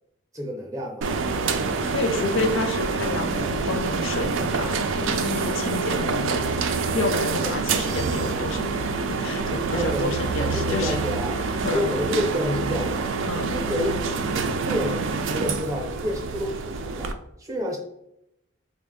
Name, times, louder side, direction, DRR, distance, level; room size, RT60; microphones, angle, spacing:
voice 1, 0.3-1.1 1.9-2.2 2.5-2.6 7.4-7.6 9.7-11.4 11.7-13.1 13.5-14.0 14.6-17.8, left 1 dB, 15° right, 1 dB, 0.6 m, -29 dB
sound 1, 1.0-17.1, right 4 dB, 70° right, 0.4 m, -26 dB
voice 2, 1.8-6.5 6.9-8.7 9.1-11.0 11.6-11.9 13.3-13.5, left 3 dB, 75° left, 5 dB, 0.5 m, -29 dB
4.2 x 2.1 x 3.6 m, 0.80 s
head